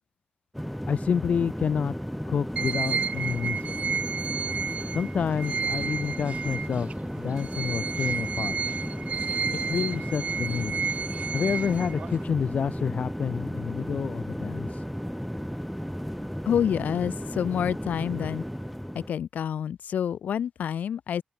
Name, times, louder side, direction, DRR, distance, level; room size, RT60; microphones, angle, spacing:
sound 1, 0.5-19.1, equal, ahead, 7.1 m, -34 dB
voice 1, 0.9-1.9 2.3-3.6 4.9-6.9 7.2-8.5 9.7-10.7 11.3-14.8, left 7 dB, 60° left, 1.0 m, -28 dB
sound 2, 2.6-6.9 7.3-12.2, right 6 dB, 55° right, 1.6 m, -31 dB
voice 2, 16.4-18.4 18.9-21.2, left 8 dB, 85° left, 3.3 m, -28 dB
open air
cardioid pair, 100°, 3 cm